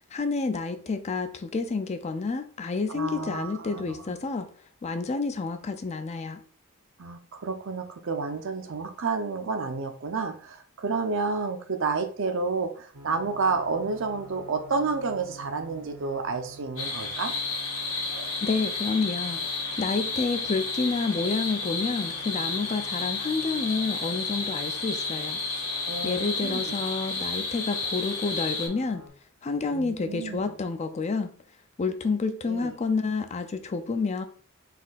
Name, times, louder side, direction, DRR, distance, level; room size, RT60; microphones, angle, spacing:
voice 1, 0.1-4.5 4.8-6.4 18.4-19.5 19.8-25.4 26.0-29.1 29.4-31.3 31.8-34.2, left 4 dB, 30° left, 0.4 m, -29 dB
voice 2, 2.9-4.2 7.0-17.3 25.9-26.8 29.7-30.4 32.4-32.7, right 4 dB, 60° right, 0.6 m, -30 dB
sound 1, 12.9-29.1, right 2 dB, 90° right, 1.1 m, -48 dB
sound 2, 16.8-28.7, left 3 dB, 60° left, 1.7 m, -31 dB
4.2 x 2.7 x 4.0 m
head